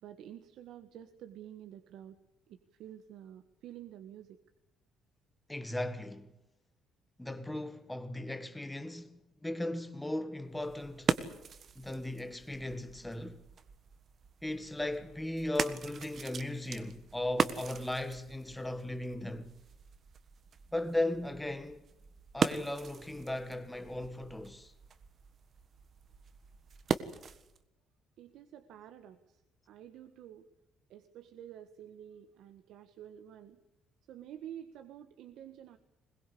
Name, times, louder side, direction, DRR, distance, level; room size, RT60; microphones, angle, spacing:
voice 1, 0.0-2.2 2.5-4.4 28.2-30.5 30.9-33.6 34.1-35.8, right 10 dB, 65° right, 1.6 m, -50 dB
voice 2, 5.5-6.3 7.2-11.2 11.8-13.5 14.4-19.6 20.7-21.9 22.3-24.7, left 1 dB, 5° left, 1.7 m, -37 dB
sound 1, 10.5-27.6, right 6 dB, 35° right, 1.5 m, -39 dB
21.5 x 21.5 x 8.5 m
cardioid pair, 150°, 0 cm